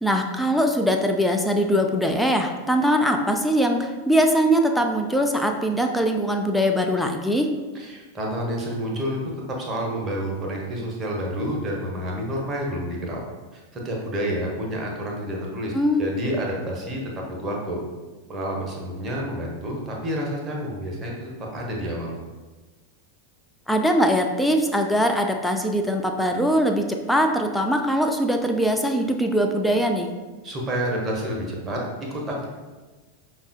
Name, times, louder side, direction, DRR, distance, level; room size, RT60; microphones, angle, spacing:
voice 1, 0.0-7.5 15.7-16.0 23.7-30.1, equal, ahead, 3 dB, 0.3 m, -22 dB
voice 2, 7.7-9.2 9.5-13.2 13.5-17.8 18.3-22.2 30.4-32.5, equal, 20° right, -1 dB, 0.8 m, -29 dB
5.3 x 2.3 x 2.5 m, 1.3 s
figure-of-eight pair, 90°, 0 cm